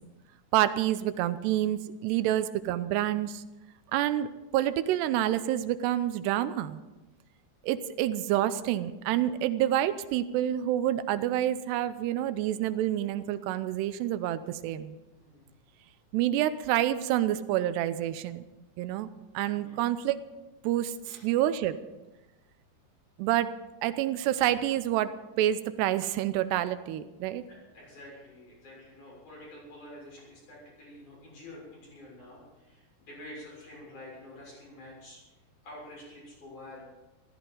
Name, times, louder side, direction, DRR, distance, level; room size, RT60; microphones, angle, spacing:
voice 1, 0.5-3.4 3.9-6.8 7.6-15.0 16.1-18.4 18.8-19.1 19.3-20.2 20.6-20.9 21.2-21.8 23.2-23.5 23.8-25.1 25.4-27.4, right 12 dB, 85° right, 13 dB, 2.8 m, -28 dB
voice 2, 19.5-19.8 21.0-21.2 27.5-35.2 35.6-36.8, left 1 dB, 45° left, -4 dB, 8.1 m, -48 dB
15.0 x 14.5 x 5.4 m, 1.1 s
omnidirectional pair, 4.8 m